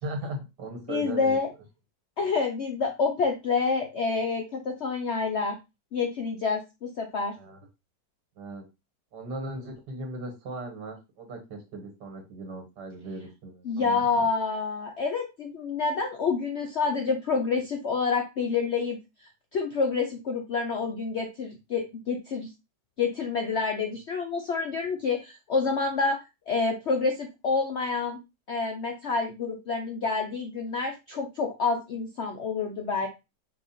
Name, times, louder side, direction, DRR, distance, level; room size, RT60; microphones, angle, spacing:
voice 1, 0.0-1.4 7.4-7.7 8.4-8.6 9.1-14.3, right 2 dB, 75° right, 2 dB, 1.9 m, -38 dB
voice 2, 0.9-1.5 2.2-5.6 5.9-7.3 13.7-22.5 23.0-26.2 26.5-28.2 28.5-33.1, left 4 dB, 65° left, 3 dB, 0.6 m, -28 dB
5.4 x 2.3 x 4.2 m, 0.24 s
omnidirectional pair, 1.9 m